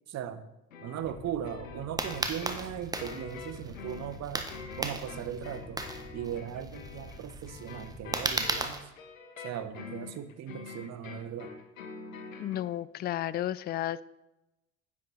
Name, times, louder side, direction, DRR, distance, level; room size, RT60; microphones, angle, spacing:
voice 1, 0.1-0.4 0.8-4.5 4.8-5.8 6.1-8.9 9.4-11.5, right 9 dB, 40° right, 12 dB, 1.0 m, -38 dB
sound 1, 0.7-12.7, left 5 dB, 85° left, 1.3 m, -46 dB
sound 2, 1.0-8.7, left 1 dB, 5° left, 2.2 m, -48 dB
sound 3, 2.0-8.8, right 2 dB, 10° right, 1.3 m, -35 dB
voice 2, 12.4-14.0, left 12 dB, 25° left, 18 dB, 0.4 m, -32 dB
10.5 x 8.6 x 4.0 m, 0.94 s
hypercardioid pair, 70°, 39 cm